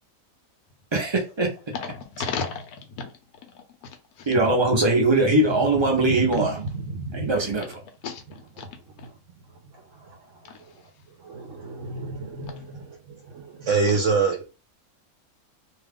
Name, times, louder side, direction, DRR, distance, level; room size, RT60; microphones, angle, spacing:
voice 1, 0.9-1.5 4.3-6.6 7.1-7.7, right 2 dB, 30° right, 0.5 m, -21 dB
voice 2, 1.8-3.1 3.5-3.9 4.2-4.3 8.0-8.2 8.6-8.7 10.5-10.6, left 5 dB, 90° left, 1.1 m, -33 dB
voice 3, 5.5-7.6 8.6-8.7 9.0-9.1 9.9-10.2 10.4-10.5 11.2-14.4, right 4 dB, 65° right, 0.9 m, -28 dB
2.8 x 2.3 x 3.5 m
omnidirectional pair, 1.6 m